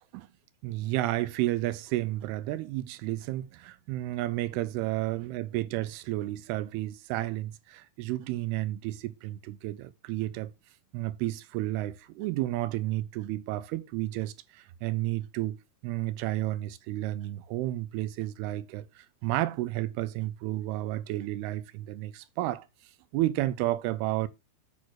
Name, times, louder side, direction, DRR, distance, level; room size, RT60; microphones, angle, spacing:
voice 1, 0.6-10.5 10.9-15.6 15.8-22.7 23.1-24.3, right 16 dB, 80° right, 2.5 m, -32 dB
8.6 x 4.6 x 6.3 m
omnidirectional pair, 4.8 m